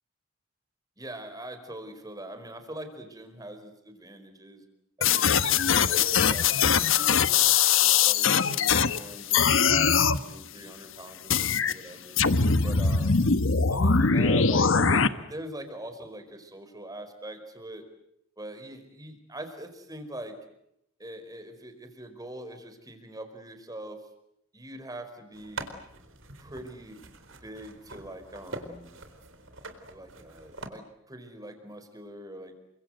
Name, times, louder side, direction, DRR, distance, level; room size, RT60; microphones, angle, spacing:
voice 1, 1.0-4.6 5.0-12.2 12.6-13.3 13.7-17.8 18.4-20.4 21.0-24.0 24.5-25.7 26.4-27.0 27.4-28.9 29.9-32.5, right 1 dB, 20° right, 7 dB, 5.0 m, -43 dB
sound 1, 5.0-9.0 9.3-10.2 11.3-11.7 12.2-15.1, left 6 dB, 70° left, 1.3 m, -22 dB
sound 2, 25.3-30.7, right 2 dB, 70° right, 4.1 m, -44 dB
30.0 x 25.0 x 8.0 m, 0.78 s
head